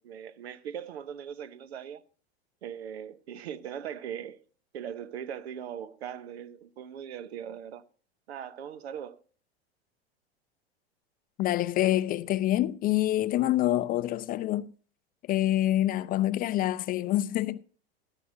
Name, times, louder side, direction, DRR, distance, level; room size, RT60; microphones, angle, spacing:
voice 1, 0.0-2.0 2.6-4.4 4.7-7.8 8.3-9.2, right 9 dB, 75° right, 1.0 m, -40 dB
voice 2, 11.4-14.7 15.3-17.6, left 14 dB, 30° left, 0.4 m, -26 dB
13.5 x 12.0 x 2.7 m
hypercardioid pair, 100°, 32 cm